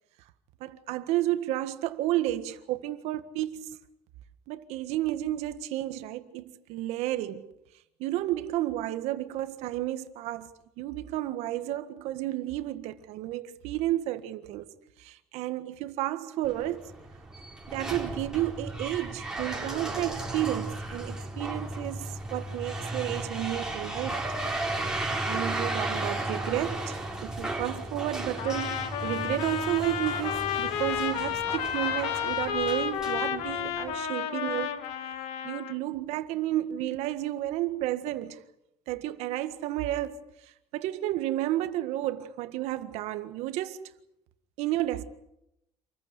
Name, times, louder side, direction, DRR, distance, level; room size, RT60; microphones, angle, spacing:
voice 1, 0.6-3.8 4.5-7.5 8.0-14.7 15.0-16.9 17.7-24.2 24.9-34.7 35.4-38.4 38.9-40.2 40.4-43.8 44.6-45.0, right 14 dB, 80° right, 1.7 m, -32 dB
sound 1, 16.4-33.9, right 2 dB, 5° right, 4.5 m, -35 dB
Trumpet, 28.4-35.8, left 9 dB, 75° left, 2.2 m, -31 dB
27.5 x 15.0 x 9.7 m
cardioid pair, 130°, 11 cm